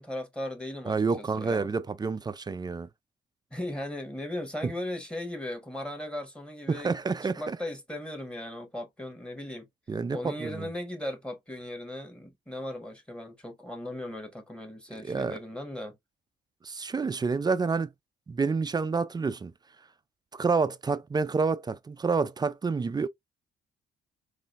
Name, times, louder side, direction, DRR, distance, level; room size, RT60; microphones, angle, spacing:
voice 1, 0.0-1.7 3.5-9.7 10.1-16.0, left 1 dB, 5° left, 1.3 m, -37 dB
voice 2, 0.9-2.9 4.6-4.7 6.7-7.6 9.9-10.7 15.0-15.4 16.6-17.9 18.3-19.5 20.3-23.1, right 4 dB, 20° right, 0.3 m, -28 dB
3.8 x 2.6 x 2.4 m
cardioid pair, 90°, 20 cm